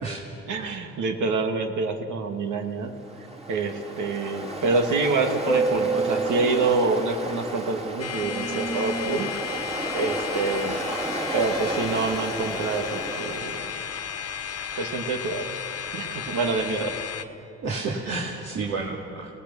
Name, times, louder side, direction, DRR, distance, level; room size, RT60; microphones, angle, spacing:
voice 1, 0.5-2.9 3.5-9.3 9.9-10.8 11.3-13.8 14.8-15.4 15.9-17.0, right 3 dB, 80° right, 4 dB, 2.3 m, -26 dB
Ocean, 2.9-14.0, right 2 dB, 20° right, 2.4 m, -31 dB
sound 1, 8.0-17.2, left 8 dB, 55° left, 1.5 m, -34 dB
voice 2, 17.6-19.3, right 3 dB, 60° right, -2 dB, 2.6 m, -31 dB
28.0 x 19.0 x 7.2 m, 2.7 s
cardioid pair, 90°, 30 cm